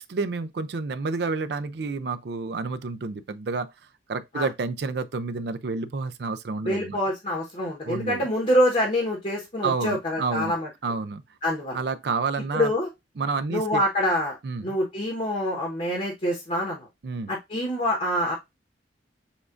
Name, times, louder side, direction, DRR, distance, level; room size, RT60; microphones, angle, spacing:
voice 1, 0.0-3.7 4.1-7.0 7.8-8.3 9.6-10.6 10.8-11.2 11.7-12.7 13.2-13.8 14.4-14.8 17.0-17.3, right 4 dB, 60° right, 0.4 m, -29 dB
voice 2, 6.6-10.7 11.4-11.8 12.5-12.9 13.5-14.4 14.6-16.9 17.3-18.3, left 1 dB, 40° left, 1.1 m, -25 dB
7.0 x 2.5 x 2.5 m
head